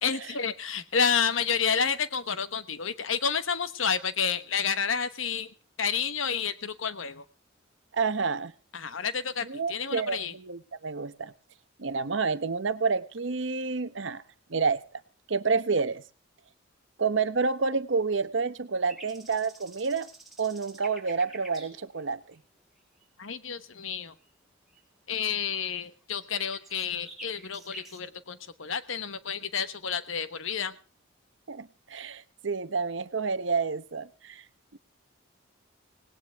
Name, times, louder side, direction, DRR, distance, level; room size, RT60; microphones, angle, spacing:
voice 1, 0.0-5.5 5.8-7.2 8.7-10.3 23.2-24.1 25.1-30.8, left 6 dB, 80° left, 12 dB, 1.2 m, -30 dB
voice 2, 7.9-8.5 9.4-11.3 11.8-14.2 14.5-14.8 15.3-16.0 17.0-20.1 20.4-22.2 31.5-34.4 34.7-34.8, right 4 dB, 65° right, 13 dB, 0.9 m, -29 dB
sound 1, 18.9-21.7 22.0-22.1 22.3-22.7 23.0-23.1 23.4-23.5 23.8-23.9 24.2-24.3 24.7-24.8 25.2-25.3 25.6-25.8 26.1-28.0, right 2 dB, ahead, 4.6 m, -49 dB
19.0 x 18.0 x 3.5 m, 0.36 s
head